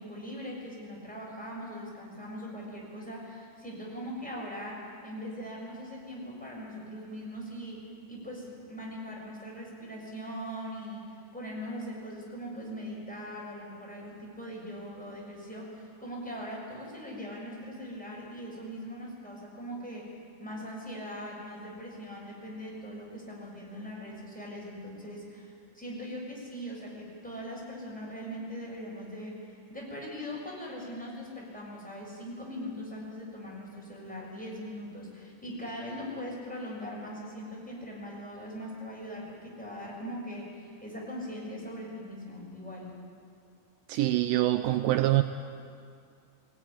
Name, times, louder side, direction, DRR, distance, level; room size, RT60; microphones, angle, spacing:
voice 1, 0.0-42.9, equal, ahead, -3 dB, 6.0 m, -41 dB
voice 2, 43.9-45.2, right 15 dB, 85° right, 9 dB, 2.0 m, -25 dB
21.5 x 18.0 x 9.9 m, 2.3 s
omnidirectional pair, 4.9 m